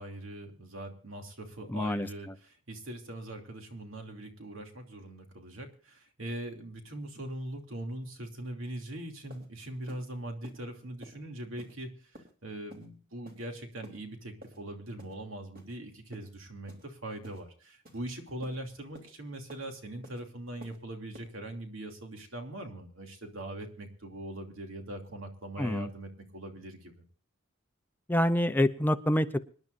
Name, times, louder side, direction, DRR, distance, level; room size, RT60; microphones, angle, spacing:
voice 1, 0.0-26.9, right 1 dB, 75° right, 3 dB, 2.8 m, -41 dB
voice 2, 1.7-2.1 25.6-25.9 28.1-29.4, left 1 dB, 10° left, 11 dB, 0.5 m, -26 dB
sound 1, 8.8-8.9 9.3-9.5 9.9-10.0 10.4-10.6 11.0-11.2 11.6-11.7 12.1-12.3 12.7-12.9 13.2-13.4 13.8-14.0 14.4-14.6 15.0-15.1 15.5-15.7 16.1-16.3 16.7-16.9 17.2-17.4 17.8-18.0 18.4-18.6 18.9-19.1 19.5-19.7 20.0-20.2 20.6-20.8 21.1-21.3, equal, 45° right, 3.3 m, -51 dB
26.0 x 11.0 x 2.6 m, 0.42 s
head